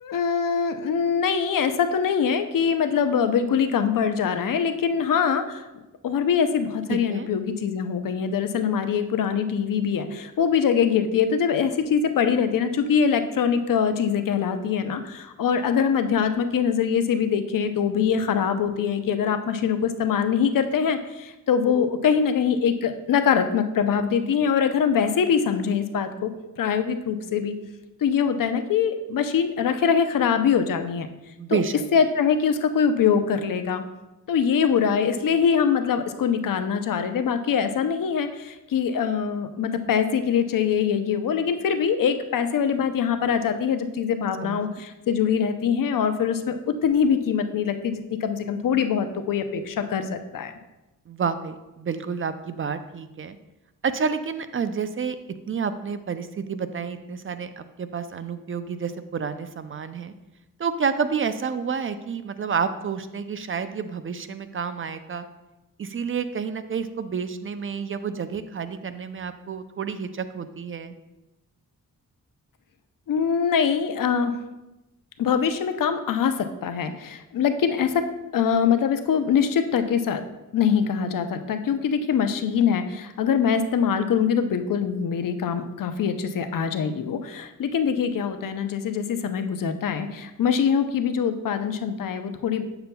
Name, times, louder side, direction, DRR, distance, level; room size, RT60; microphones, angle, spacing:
voice 1, 0.0-5.7 6.0-26.3 26.6-27.5 28.0-31.1 31.5-31.6 31.9-33.8 34.3-50.5 73.1-74.4 75.2-78.1 78.3-80.2 80.5-92.6, left 7 dB, 70° left, 9 dB, 0.6 m, -23 dB
voice 2, 6.9-7.3 31.4-31.8 44.4-44.8 51.1-53.4 53.8-55.2 55.5-60.1 60.6-65.3 65.8-70.9, right 6 dB, 40° right, 11 dB, 0.4 m, -29 dB
7.8 x 6.8 x 2.2 m, 1.0 s
cardioid pair, 85°, 34 cm